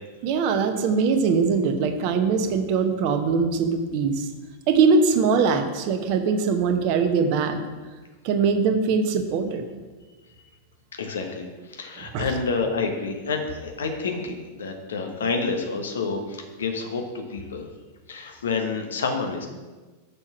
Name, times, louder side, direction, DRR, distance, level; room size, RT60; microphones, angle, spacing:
voice 1, 0.2-4.3 4.7-7.6 8.2-9.7 12.0-12.3, right 5 dB, 45° right, 6 dB, 1.0 m, -22 dB
voice 2, 11.0-17.7 18.1-19.5, left 4 dB, 65° left, 4 dB, 1.2 m, -29 dB
6.7 x 6.0 x 5.8 m, 1.3 s
figure-of-eight pair, 90°, 0 cm